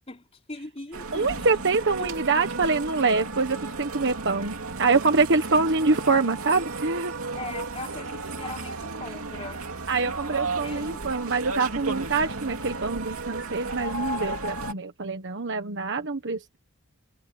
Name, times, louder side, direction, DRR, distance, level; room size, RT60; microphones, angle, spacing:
voice 1, 0.1-1.5 2.0-2.1 7.3-9.6 10.1-11.0, left 2 dB, 30° left, 3.7 m, -40 dB
sound 1, 0.9-14.7, right 3 dB, 75° right, 2.7 m, -34 dB
voice 2, 1.1-7.1 9.9-16.6, right 4 dB, 55° right, 1.3 m, -25 dB
head